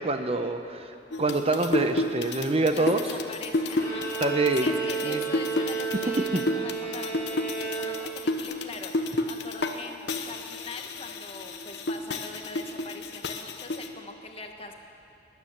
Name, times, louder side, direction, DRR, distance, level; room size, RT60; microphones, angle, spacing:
voice 1, 0.0-3.0 4.2-4.7 5.0-5.2 6.3-6.4, right 2 dB, 35° right, 7 dB, 0.7 m, -26 dB
sound 1, 1.1-9.8 10.1-13.9, left 2 dB, 75° left, 1.0 m, -31 dB
voice 2, 2.7-4.1 4.6-14.7, left 3 dB, 35° left, 4 dB, 1.2 m, -42 dB
Bowed string instrument, 3.7-8.4, right 5 dB, 15° left, 5.0 m, -33 dB
20.5 x 9.7 x 7.2 m, 2.6 s
head